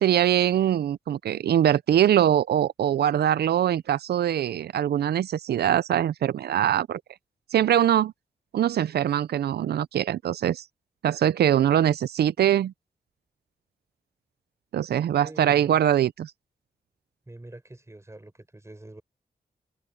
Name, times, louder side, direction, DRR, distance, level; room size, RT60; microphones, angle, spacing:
voice 1, 0.0-7.0 7.5-8.1 8.5-10.6 11.0-12.7 14.7-16.3, right 10 dB, 90° right, 0.4 m, -22 dB
voice 2, 15.2-15.8 17.3-19.0, right 1 dB, 15° right, 5.5 m, -45 dB
cardioid pair, 75°, 16 cm